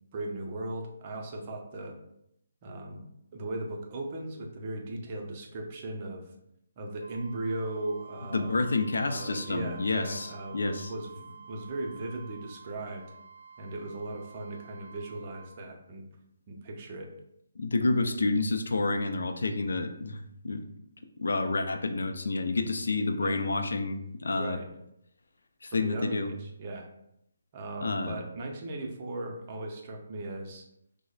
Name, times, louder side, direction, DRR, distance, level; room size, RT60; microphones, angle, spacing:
voice 1, 0.1-2.0 2.6-3.0 3.3-6.2 6.8-8.5 9.0-13.1 13.6-16.0 16.5-17.1 23.2-23.4 24.3-24.7 25.7-26.9 27.5-30.7, right 2 dB, 35° right, 2 dB, 0.6 m, -37 dB
Wind instrument woodwind instrument, 7.0-15.6, right 5 dB, 75° right, 0.4 m, -50 dB
voice 2, 8.3-10.9 17.6-20.7 21.2-24.6 25.6-26.3 27.8-28.2, left 3 dB, 80° left, 7 dB, 0.4 m, -29 dB
5.9 x 2.1 x 2.4 m, 0.79 s
hypercardioid pair, 155°, 0 cm